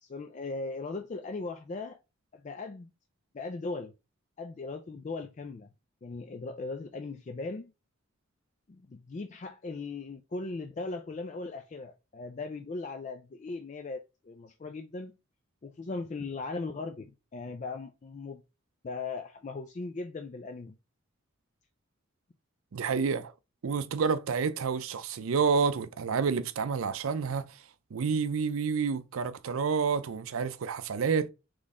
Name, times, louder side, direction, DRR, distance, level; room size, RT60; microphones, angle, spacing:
voice 1, 0.0-2.0 2.3-2.9 3.3-3.9 4.4-5.7 6.0-7.7 8.7-15.2 15.6-18.4 18.8-20.8, left 3 dB, 35° left, 0.3 m, -38 dB
voice 2, 22.7-23.3 23.6-27.5 27.9-31.3, right 5 dB, 80° right, 0.5 m, -29 dB
4.1 x 3.1 x 3.6 m
head